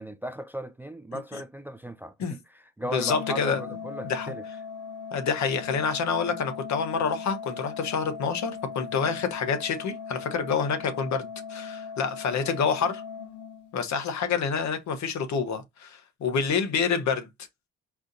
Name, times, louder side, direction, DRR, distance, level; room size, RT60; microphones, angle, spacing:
voice 1, 0.0-4.4, equal, 5° right, 0.4 m, -37 dB
Organ, 2.9-14.0, left 6 dB, 85° left, 1.0 m, -39 dB
voice 2, 2.9-3.6 4.1-4.3 5.1-13.0 13.7-17.3, left 6 dB, 65° left, 1.2 m, -28 dB
4.8 x 2.6 x 4.0 m
cardioid pair, 90°, 30 cm